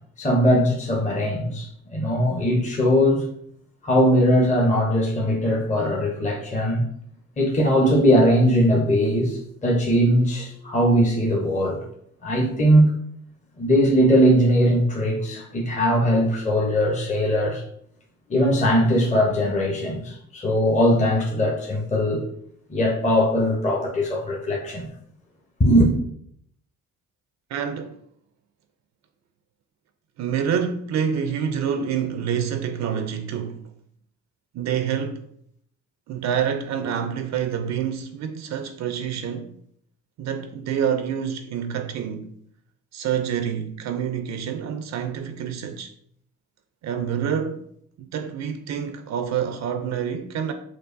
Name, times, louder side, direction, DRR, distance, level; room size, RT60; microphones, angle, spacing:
voice 1, 0.2-3.3 3.8-6.8 7.4-11.8 12.2-13.0 13.6-17.6 18.3-22.2 22.7-24.9 25.6-25.9, equal, 25° left, 0.7 m, -20 dB
voice 2, 27.5-28.0 30.2-33.6 34.5-35.2 36.1-39.5 40.2-42.3 42.9-45.9 46.8-47.6 48.0-50.5, right 8 dB, 65° right, 0.4 m, -27 dB
4.6 x 2.4 x 2.5 m
cardioid pair, 90°, 30 cm